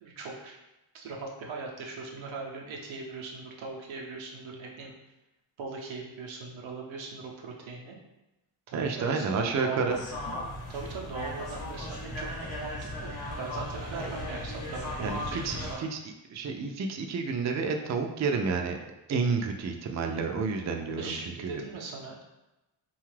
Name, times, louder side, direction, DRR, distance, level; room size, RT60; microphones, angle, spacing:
voice 1, 0.0-0.6 0.9-4.9 5.6-8.0 8.7-9.9 10.7-13.1 13.4-15.8 21.0-22.2, right 4 dB, 90° right, -1 dB, 0.7 m, -40 dB
voice 2, 8.7-10.0 14.0-14.1 15.0-18.8 19.1-21.6, right 4 dB, 40° right, 4 dB, 0.4 m, -30 dB
sound 1, 9.9-15.7, left 1 dB, 50° left, 0.9 m, -37 dB
2.8 x 2.3 x 3.2 m, 0.98 s
cardioid pair, 55°, 46 cm